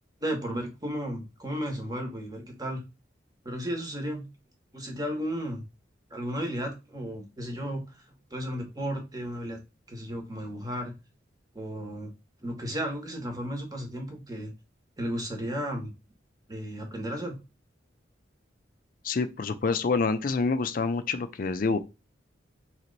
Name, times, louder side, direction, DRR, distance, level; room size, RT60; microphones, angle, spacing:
voice 1, 0.2-2.8 3.4-4.3 4.7-5.6 6.1-8.0 8.3-9.6 9.9-10.9 11.5-12.1 12.4-14.5 15.0-15.9 16.5-17.4, equal, 20° right, 1.1 m, -34 dB
voice 2, 19.0-21.8, left 4 dB, 50° left, 0.4 m, -27 dB
3.1 x 3.0 x 3.9 m
head